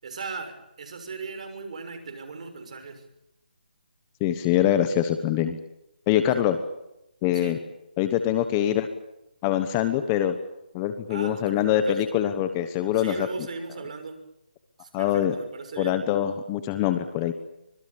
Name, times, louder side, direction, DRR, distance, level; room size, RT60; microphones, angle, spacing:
voice 1, 0.0-3.0 7.3-7.6 11.1-12.0 12.9-14.2 14.8-16.0, right 4 dB, 45° right, 6 dB, 6.6 m, -38 dB
voice 2, 4.2-5.6 6.1-6.6 7.2-7.6 8.0-8.9 9.4-10.4 10.7-13.3 14.9-15.3 15.8-17.3, left 11 dB, 15° left, 10 dB, 1.2 m, -24 dB
25.5 x 20.0 x 8.6 m, 0.86 s
hypercardioid pair, 170°, 5 cm